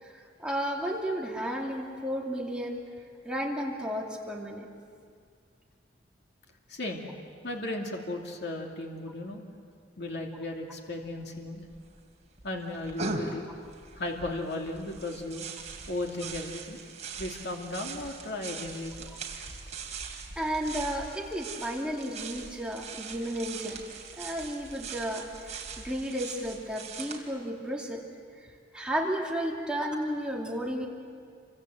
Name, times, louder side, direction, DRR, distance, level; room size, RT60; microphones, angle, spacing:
voice 1, 0.0-2.8 3.2-4.7 20.4-23.8 24.2-28.0 28.7-30.9, equal, 5° right, -2 dB, 2.7 m, -33 dB
voice 2, 6.7-7.1 7.4-9.4 10.0-11.6 12.4-13.5 14.0-15.4 15.9-16.8 17.2-19.1, left 2 dB, 65° left, 0 dB, 2.7 m, -35 dB
sound 1, 11.0-11.1 11.3-12.0 12.4-27.2, right 4 dB, 40° right, 3.4 m, -41 dB
29.0 x 25.5 x 7.8 m, 2.2 s
head